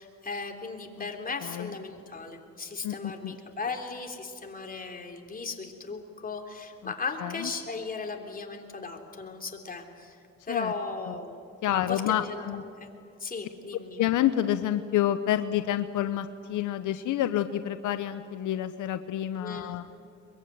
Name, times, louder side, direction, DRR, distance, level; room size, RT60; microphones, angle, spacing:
voice 1, 0.0-10.2 10.5-11.4 11.7-12.9 13.2-14.0 19.4-19.8, left 4 dB, 30° left, 3 dB, 3.4 m, -37 dB
voice 2, 1.4-1.7 2.8-3.4 6.8-6.9 7.2-7.5 10.5-10.7 11.1-11.2 11.6-12.6 14.0-19.8, left 12 dB, 80° left, 10 dB, 0.9 m, -28 dB
23.0 x 22.5 x 9.4 m, 2.4 s
cardioid pair, 90°, 30 cm